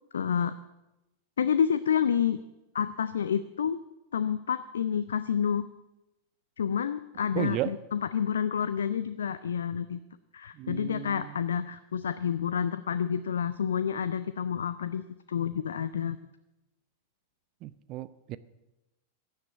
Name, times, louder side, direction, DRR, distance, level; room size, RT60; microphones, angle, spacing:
voice 1, 0.1-0.6 1.4-2.4 2.7-3.8 4.1-5.7 6.6-10.0 10.3-16.2, left 8 dB, 65° left, 13 dB, 0.5 m, -29 dB
voice 2, 7.3-7.7 10.5-11.4 17.6-18.4, right 14 dB, 40° right, 16 dB, 0.6 m, -34 dB
16.0 x 10.5 x 8.4 m, 0.97 s
figure-of-eight pair, 90°, 0 cm